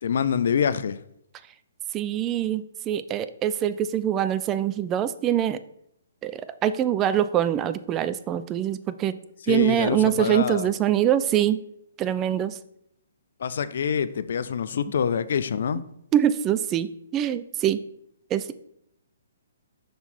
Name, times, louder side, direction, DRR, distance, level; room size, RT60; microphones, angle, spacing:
voice 1, 0.0-1.0 9.5-10.7 13.4-15.8, left 7 dB, 60° left, 0.4 m, -25 dB
voice 2, 1.9-5.6 6.2-9.2 9.5-11.6 12.0-12.6 16.1-17.8 18.3-18.5, right 10 dB, 20° right, 0.3 m, -24 dB
5.8 x 3.9 x 4.2 m
hypercardioid pair, 135°, 0 cm